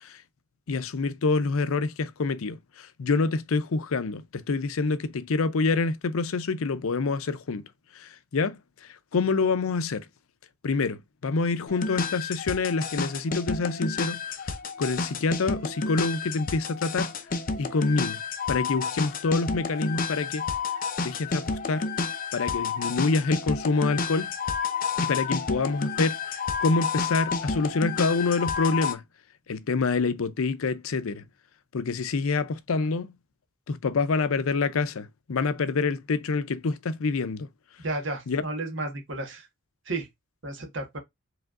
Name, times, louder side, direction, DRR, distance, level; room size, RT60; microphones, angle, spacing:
voice 1, 0.7-7.7 8.0-8.6 9.1-10.0 10.6-14.5 14.8-17.1 17.6-18.2 18.5-20.4 21.0-21.9 22.3-24.3 25.0-29.0 29.5-31.2 31.7-33.1 33.7-37.5 38.3-38.4, left 4 dB, 85° left, 0.6 m, -27 dB
sound 1, 11.7-28.9, left 5 dB, 40° left, 0.6 m, -30 dB
voice 2, 37.8-39.5 39.9-40.1 40.4-41.0, right 2 dB, 60° right, 1.5 m, -32 dB
4.9 x 3.4 x 2.4 m
head